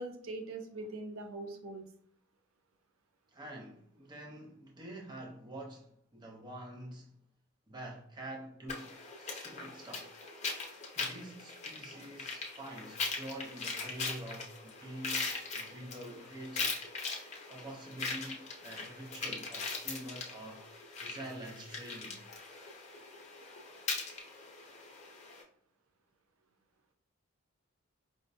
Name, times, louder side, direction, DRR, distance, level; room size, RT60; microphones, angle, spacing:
voice 1, 0.0-1.9, right 2 dB, 85° right, 0.6 m, -42 dB
voice 2, 3.3-7.2 7.7-10.2 11.0-16.8 17.5-20.6 21.0-22.2, right 1 dB, 20° right, 0.5 m, -46 dB
sound 1, 8.7-25.4, left 4 dB, 30° left, 0.6 m, -40 dB
4.9 x 2.1 x 2.6 m
head